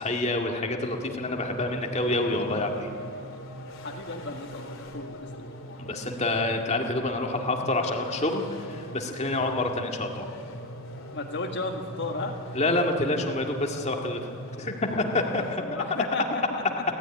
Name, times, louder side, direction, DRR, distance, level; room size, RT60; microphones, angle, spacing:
voice 1, 0.0-2.9 5.8-10.3 12.5-14.2 14.6-15.8, left 2 dB, 30° left, 2 dB, 2.0 m, -27 dB
sound 1, 0.8-15.6, equal, 70° left, 2.5 m, -41 dB
voice 2, 3.7-5.5 11.1-12.6 15.4-16.8, left 2 dB, 55° left, 2 dB, 1.7 m, -34 dB
30.0 x 13.0 x 9.8 m, 2.4 s
head